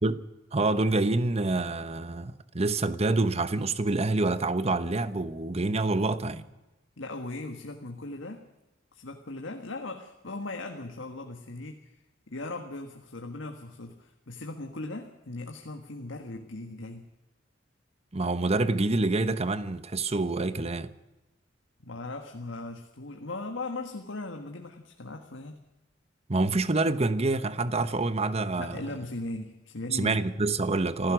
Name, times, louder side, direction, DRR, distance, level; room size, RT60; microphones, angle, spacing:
voice 1, 0.5-6.4 18.1-20.9 26.3-28.8 29.9-31.1, right 2 dB, 35° right, 1.0 m, -27 dB
voice 2, 7.0-8.4 8.9-17.1 21.8-25.6 28.6-30.2 31.0-31.1, left 2 dB, 80° left, 1.6 m, -38 dB
26.5 x 15.5 x 6.3 m
head